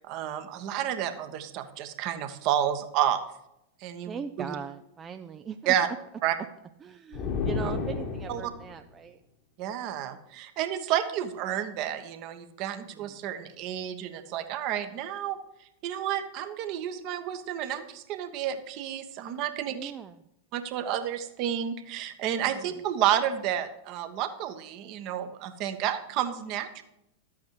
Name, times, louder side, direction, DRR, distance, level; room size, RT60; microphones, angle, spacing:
voice 1, 0.0-3.2 3.8-4.5 5.7-5.9 6.2-6.3 7.6-7.7 8.3-8.4 9.6-15.4 15.8-19.9 20.5-26.8, right 10 dB, 40° right, 8 dB, 1.2 m, -30 dB
voice 2, 4.1-5.8 6.8-9.2 12.7-13.2 19.7-20.2 22.4-22.7, right 7 dB, 20° right, 8 dB, 0.5 m, -40 dB
sound 1, 7.1-8.8, left 5 dB, 40° left, 1.3 m, -31 dB
12.5 x 8.5 x 4.8 m, 0.82 s
figure-of-eight pair, 90°, 0 cm